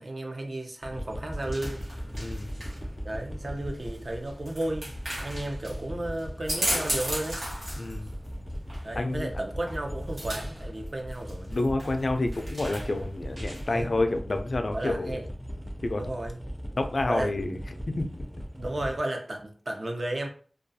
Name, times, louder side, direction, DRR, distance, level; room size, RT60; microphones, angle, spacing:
voice 1, 0.0-1.8 3.0-4.9 5.2-7.4 8.8-11.5 13.7-13.9 14.7-15.3 15.9-16.4 17.1-17.6 18.6-20.3, right 1 dB, 60° right, 0.5 m, -33 dB
sound 1, 0.8-19.0, equal, 5° right, 0.4 m, -39 dB
sound 2, 0.9-13.8, right 1 dB, 80° right, 1.0 m, -37 dB
voice 2, 2.2-2.5 7.8-8.1 9.0-9.3 11.5-15.2 15.8-16.1 16.8-17.6 17.9-18.1, left 2 dB, 70° left, 0.3 m, -29 dB
2.3 x 2.3 x 2.6 m
wide cardioid pair, 70°, 0 cm